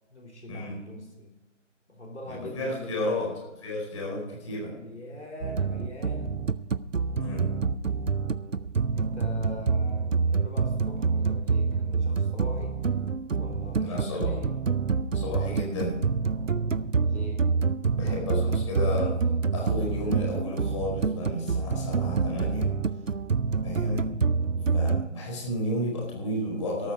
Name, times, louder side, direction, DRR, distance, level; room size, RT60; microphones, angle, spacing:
voice 1, 0.1-1.4 1.9-3.3 4.6-6.4 9.0-12.8 13.4-14.5 17.0-17.6, left 1 dB, 65° left, 0 dB, 3.5 m, -42 dB
voice 2, 2.3-3.3 3.6-4.7 7.2-7.6 13.8-14.3 15.1-16.0 17.9-19.2 19.5-22.7 23.6-24.1 24.7-26.9, left 1 dB, 25° left, -1 dB, 4.8 m, -32 dB
sound 1, 5.4-25.1, right 5 dB, 85° right, 0.8 m, -27 dB
13.5 x 13.0 x 4.7 m, 1.0 s
figure-of-eight pair, 155°, 38 cm